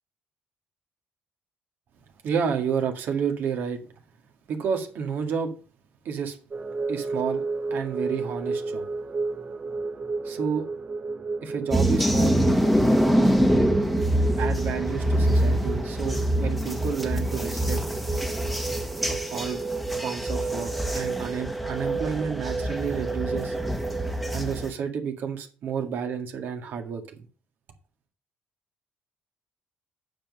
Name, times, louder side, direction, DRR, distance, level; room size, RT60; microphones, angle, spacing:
voice 1, 2.2-3.8 4.5-5.5 6.1-6.4 6.9-7.4 7.7-8.8 10.2-10.7 11.4-12.4 14.4-17.8 19.1-19.6 19.9-23.5 24.3-27.3, right 7 dB, 70° right, 1.9 m, -30 dB
sound 1, 6.5-24.4, right 4 dB, 30° right, 0.8 m, -32 dB
sound 2, 11.7-24.7, equal, ahead, 1.2 m, -25 dB
8.8 x 5.5 x 6.4 m
cardioid pair, 100°, 4 cm